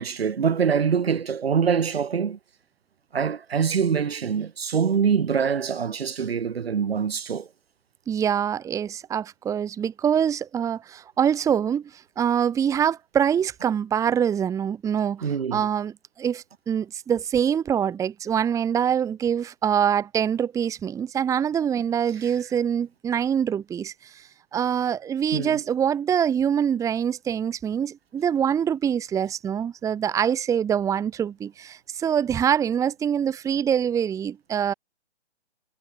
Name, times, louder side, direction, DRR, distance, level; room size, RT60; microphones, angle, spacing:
voice 1, 0.0-2.4 3.1-7.5 15.2-15.7 25.3-25.6, right 6 dB, 60° right, 4.2 m, -24 dB
voice 2, 8.1-34.7, right 8 dB, 10° right, 2.2 m, -25 dB
figure-of-eight pair, 140°, 34 cm